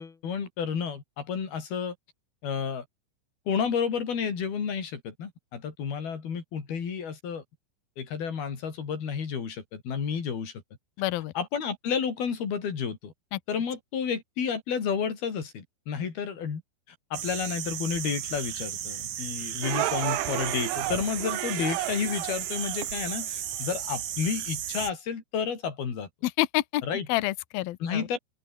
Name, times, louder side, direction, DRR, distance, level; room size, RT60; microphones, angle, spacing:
voice 1, 0.0-1.9 2.4-2.9 3.5-7.4 8.0-10.5 11.4-13.1 13.5-16.6 17.1-26.1 26.8-27.1 27.8-28.2, left 6 dB, 50° left, 5.8 m, -31 dB
voice 2, 11.0-11.3 13.3-13.4 26.2-26.8 27.1-28.1, left 17 dB, 85° left, 2.1 m, -28 dB
sound 1, 17.1-24.9, right 10 dB, 55° right, 2.5 m, -35 dB
sound 2, 19.6-23.2, right 16 dB, 75° right, 3.5 m, -32 dB
open air
omnidirectional pair, 5.8 m